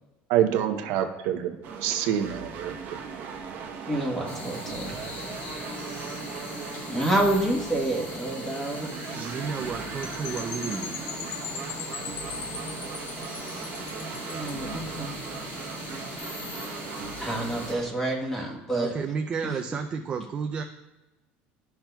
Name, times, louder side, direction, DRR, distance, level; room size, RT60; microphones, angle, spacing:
voice 1, 0.3-3.0, right 10 dB, 75° right, 5 dB, 0.6 m, -26 dB
sound 1, 1.6-17.9, right 5 dB, 45° right, 0.9 m, -38 dB
voice 2, 3.9-5.0 6.8-8.9 14.2-15.2 17.2-18.9 19.4-19.5, right 1 dB, 10° left, -1 dB, 1.1 m, -28 dB
sound 2, 4.3-17.7, left 2 dB, 35° left, 1.0 m, -40 dB
voice 3, 9.1-10.9 18.7-20.6, right 5 dB, 25° right, 4 dB, 0.3 m, -32 dB
Percussion / Wind chime, 10.0-14.7, left 6 dB, 90° left, 0.7 m, -39 dB
11.5 x 5.8 x 2.2 m, 1.0 s
cardioid pair, 170°, 4 cm